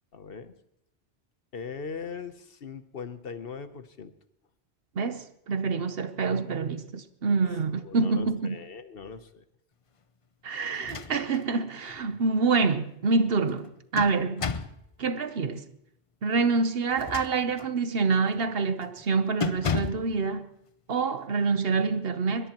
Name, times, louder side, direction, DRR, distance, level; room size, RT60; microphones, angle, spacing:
voice 1, 0.1-0.5 1.5-4.1 7.7-9.4, left 5 dB, 60° left, 1.0 m, -40 dB
voice 2, 5.0-8.6 10.4-14.5 15.0-15.7 16.2-20.5 20.9-22.5, right 4 dB, 60° right, 1.0 m, -26 dB
sound 1, 10.7-11.5 11.9-12.0 13.5-14.8 16.9-17.8 18.3-18.5 18.8-19.0 19.4-20.1, left 5 dB, 35° left, 0.6 m, -33 dB
21.5 x 21.5 x 3.0 m
omnidirectional pair, 1.2 m